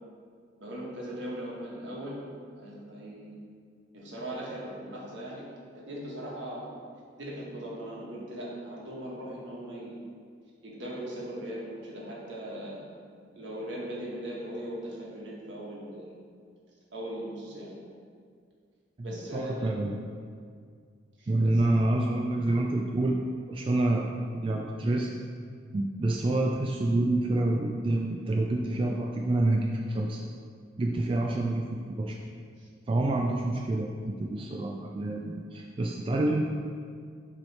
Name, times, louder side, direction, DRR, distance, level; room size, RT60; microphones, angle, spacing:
voice 1, 0.6-2.2 2.5-3.4 3.9-5.5 5.7-6.6 7.2-10.0 10.6-12.9 13.3-16.1 16.9-17.7 19.0-19.7 21.2-21.3 32.6-32.7, equal, 70° right, -4 dB, 1.4 m, -39 dB
voice 2, 19.0-19.9 21.3-25.1 25.7-30.2 30.8-32.2 32.9-33.9 34.2-36.5, right 2 dB, 30° right, 0 dB, 0.3 m, -27 dB
7.3 x 3.2 x 4.1 m, 2.1 s
head